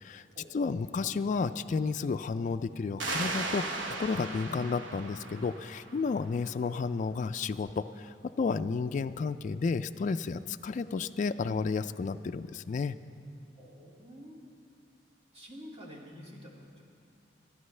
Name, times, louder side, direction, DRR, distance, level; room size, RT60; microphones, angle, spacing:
voice 1, 0.5-13.0, left 4 dB, 45° left, 10 dB, 0.3 m, -32 dB
sound 1, 3.0-6.4, right 2 dB, 75° right, 1.1 m, -37 dB
voice 2, 13.6-14.4 15.3-16.8, equal, 35° right, -3 dB, 2.2 m, -48 dB
25.0 x 12.0 x 3.2 m, 2.4 s
head